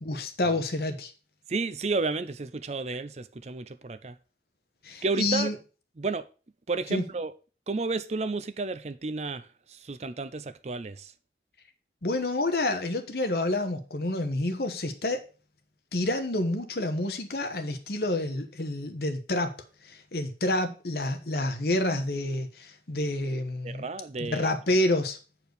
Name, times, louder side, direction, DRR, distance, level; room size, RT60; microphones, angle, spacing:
voice 1, 0.0-1.1 4.8-5.5 6.9-7.0 12.0-15.2 15.9-19.5 19.8-23.9 24.2-25.2, left 1 dB, 60° left, 1.2 m, -28 dB
voice 2, 1.5-4.2 5.0-5.5 6.0-6.2 6.7-7.3 7.7-11.1 23.6-24.5, right 3 dB, 40° right, 0.5 m, -32 dB
8.0 x 4.6 x 6.7 m
head